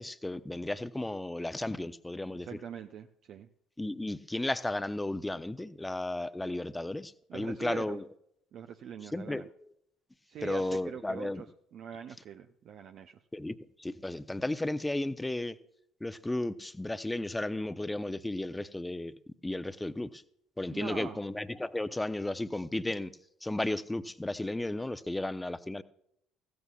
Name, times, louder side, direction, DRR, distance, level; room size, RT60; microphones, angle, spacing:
voice 1, 0.0-2.5 3.8-8.0 9.1-9.4 10.4-11.4 13.3-15.6 16.0-19.1 19.4-20.2 20.6-23.1 23.4-25.8, left 1 dB, 10° left, 0.7 m, -34 dB
voice 2, 2.3-3.5 7.3-8.0 8.5-9.5 10.3-13.2 20.7-21.2, right 8 dB, 55° right, 0.6 m, -43 dB
15.5 x 14.0 x 2.4 m
hypercardioid pair, 60°, 0 cm